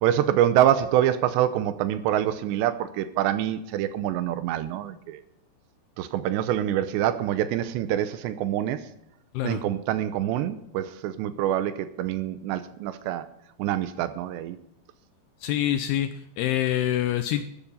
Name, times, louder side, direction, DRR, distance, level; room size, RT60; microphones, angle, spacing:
voice 1, 0.0-5.2 6.0-8.9 9.4-13.2 13.6-14.6, right 11 dB, 85° right, 12 dB, 2.9 m, -25 dB
voice 2, 15.4-17.4, left 12 dB, 80° left, 9 dB, 2.4 m, -26 dB
13.0 x 12.0 x 5.6 m, 0.77 s
omnidirectional pair, 5.2 m